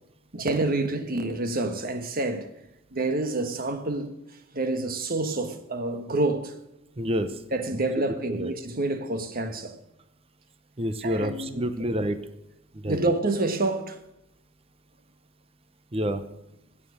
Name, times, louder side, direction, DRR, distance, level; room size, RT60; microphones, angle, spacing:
voice 1, 0.3-2.5 2.9-4.1 4.5-6.5 7.5-9.8 11.0-11.7 12.9-14.0, right 2 dB, 45° right, 1.4 m, -28 dB
voice 2, 7.0-7.4 8.0-8.5 10.8-12.2 12.8-13.1 15.9-16.2, equal, 30° right, 0.8 m, -28 dB
16.5 x 7.4 x 6.4 m
head